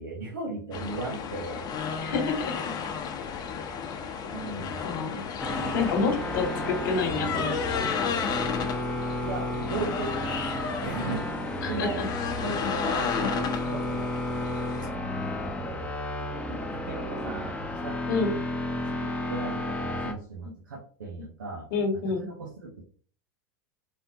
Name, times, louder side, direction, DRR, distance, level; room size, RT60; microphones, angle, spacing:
voice 1, 0.0-1.7 4.3-4.8 9.2-10.3 10.8-12.0 12.4-14.9 15.4-15.9 16.5-18.3 18.9-21.7 22.2-22.8, right 3 dB, 80° right, -3 dB, 1.1 m, -37 dB
sound 1, 0.7-14.9, left 6 dB, 40° left, 0.9 m, -33 dB
voice 2, 2.0-2.5 4.8-5.2 5.7-8.0 11.6-12.1 18.1-18.3 21.7-22.3, left 4 dB, 65° left, 5 dB, 1.3 m, -28 dB
sound 2, 5.4-20.1, left 1 dB, 10° left, 0.8 m, -32 dB
4.3 x 3.6 x 2.9 m, 0.44 s
hypercardioid pair, 90°, 11 cm